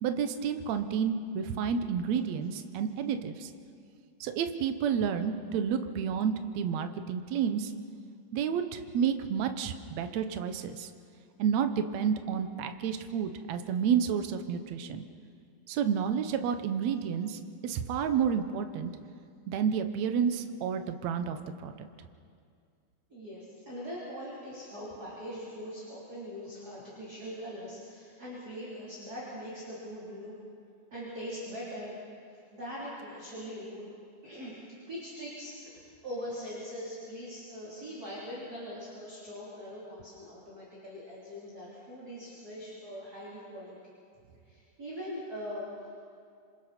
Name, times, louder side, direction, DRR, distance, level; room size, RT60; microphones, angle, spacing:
voice 1, 0.0-3.5 4.2-7.7 8.3-10.9 11.4-15.0 15.7-18.9 19.5-21.4 21.6-21.9, right 7 dB, 70° right, 8 dB, 1.7 m, -30 dB
voice 2, 23.1-30.3 30.9-32.0 32.3-33.9 34.2-34.6 34.9-43.9 44.4-45.9, equal, 25° right, -7 dB, 3.9 m, -42 dB
27.0 x 26.5 x 4.4 m, 2.3 s
omnidirectional pair, 4.3 m